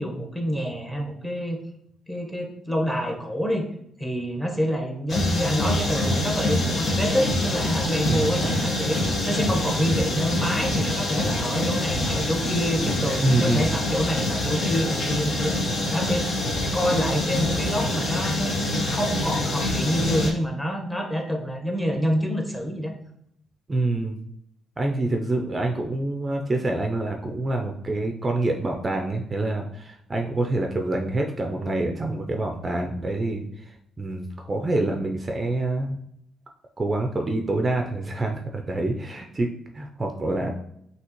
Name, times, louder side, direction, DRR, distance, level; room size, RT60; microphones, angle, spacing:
voice 1, 0.0-1.6 2.1-3.7 4.0-15.6 15.9-16.3 16.7-22.9, equal, 10° left, 2 dB, 1.0 m, -27 dB
sound 1, 5.1-20.3, left 1 dB, 55° left, 1.2 m, -25 dB
voice 2, 8.1-8.5 13.2-13.8 23.7-24.2 24.8-33.7 34.0-36.0 36.8-40.5, right 2 dB, 30° right, 3 dB, 0.5 m, -26 dB
6.1 x 2.8 x 3.0 m, 0.74 s
cardioid pair, 90°, 0 cm